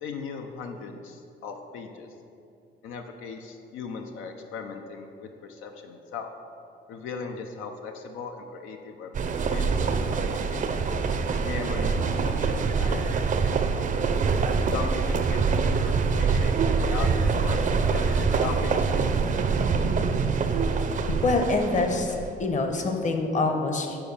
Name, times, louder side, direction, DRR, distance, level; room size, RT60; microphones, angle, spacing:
voice 1, 0.0-2.1 2.8-6.3 6.9-9.1 9.5-10.6 11.4-13.6 14.7-17.6 17.9-19.4, left 5 dB, 90° left, 4 dB, 0.5 m, -38 dB
sound 1, 9.1-22.3, right 5 dB, 40° right, 0.5 m, -25 dB
voice 2, 21.2-22.1 22.4-24.0, left 3 dB, 40° left, 4 dB, 0.9 m, -25 dB
6.8 x 4.3 x 5.4 m, 2.6 s
cardioid pair, 90°, 20 cm